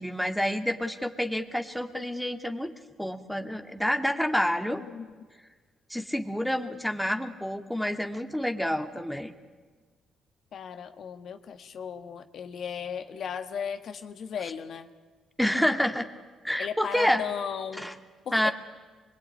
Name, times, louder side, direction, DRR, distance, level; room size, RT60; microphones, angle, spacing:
voice 1, 0.0-2.7 3.0-4.8 5.9-9.3 15.4-16.1 16.4-17.2 17.8-17.9 18.3-18.5, equal, ahead, 5 dB, 2.2 m, -28 dB
voice 2, 10.5-14.9 16.6-17.9 18.2-18.5, left 7 dB, 65° left, 8 dB, 1.6 m, -36 dB
25.5 x 21.5 x 9.6 m, 1.4 s
cardioid pair, 90°, 0 cm